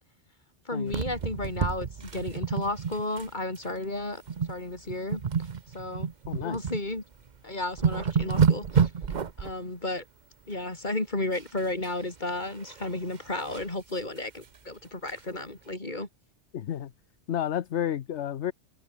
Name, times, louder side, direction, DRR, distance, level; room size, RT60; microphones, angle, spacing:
voice 1, 0.7-4.2 4.5-5.5 5.7-6.1 6.4-7.0 7.4-8.9 9.4-10.0 10.5-16.1, left 2 dB, 40° left, 3.9 m, -33 dB
sound 1, 0.9-3.3 3.5-3.8 4.3-4.6 4.9-6.8 7.3-7.4 7.6-9.5 11.3-11.9 12.3-13.7 14.2-14.3 14.5-14.6 15.1-15.2, right 6 dB, 45° right, 0.9 m, -29 dB
voice 2, 6.3-6.6 16.5-16.9 17.3-18.5, left 10 dB, 70° left, 1.1 m, -31 dB
omnidirectional pair, 1.2 m